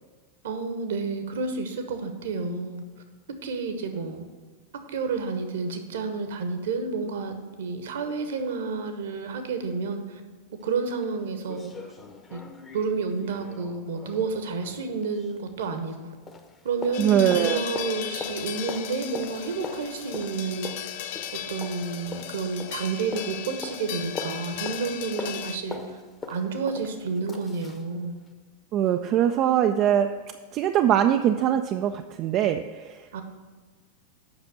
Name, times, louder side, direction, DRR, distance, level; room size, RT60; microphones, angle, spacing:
voice 1, 0.4-2.8 3.4-4.2 4.9-10.2 10.6-11.9 12.3-12.4 12.7-16.2 16.6-20.7 21.5-26.0 26.3-28.1 33.1-33.2, right 4 dB, 60° right, 7 dB, 1.1 m, -30 dB
sound 1, 10.6-10.7 11.0-11.1 11.4-16.0 16.3-27.9 28.2-28.3, left 3 dB, 20° left, 0.9 m, -41 dB
sound 2, 16.9-25.6, left 10 dB, 50° left, 0.5 m, -36 dB
voice 2, 17.0-17.6 28.7-30.1 30.5-33.2, right 10 dB, 35° right, 7 dB, 0.4 m, -22 dB
8.0 x 5.9 x 6.9 m, 1.3 s
figure-of-eight pair, 90°, 0 cm